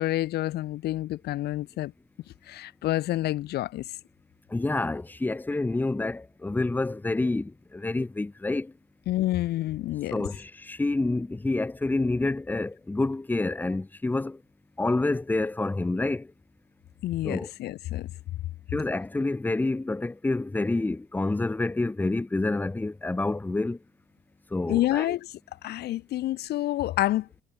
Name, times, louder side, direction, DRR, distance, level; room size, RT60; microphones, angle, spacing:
voice 1, 0.0-1.9 2.5-3.8 9.1-10.1 17.0-18.1 24.7-25.3 25.6-27.4, left 15 dB, 75° left, 3.1 m, -28 dB
voice 2, 4.5-8.7 10.1-14.4 14.8-16.3 17.2-17.5 18.7-23.8 24.5-25.1, left 2 dB, 10° left, 0.9 m, -28 dB
cardioid pair, 110°, 17 cm